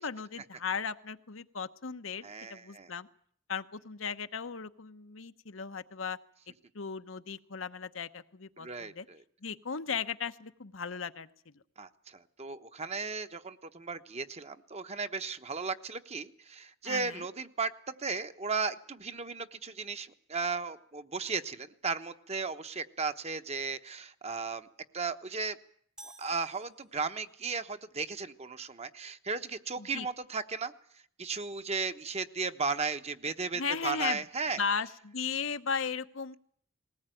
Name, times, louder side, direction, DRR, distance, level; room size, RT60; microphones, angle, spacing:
voice 1, 0.0-3.1 3.5-6.2 6.7-9.1 9.4-11.3 16.8-17.2 29.8-30.1 33.5-34.2 34.6-36.4, left 6 dB, 70° left, 10 dB, 1.0 m, -36 dB
voice 2, 2.2-2.9 8.6-9.2 11.8-24.7 24.9-25.6 26.0-30.7 31.2-34.6, right 4 dB, 30° right, 9 dB, 1.1 m, -35 dB
sound 1, 26.0-27.4, right 1 dB, 5° right, 0.9 m, -54 dB
20.0 x 19.0 x 9.1 m, 0.62 s
head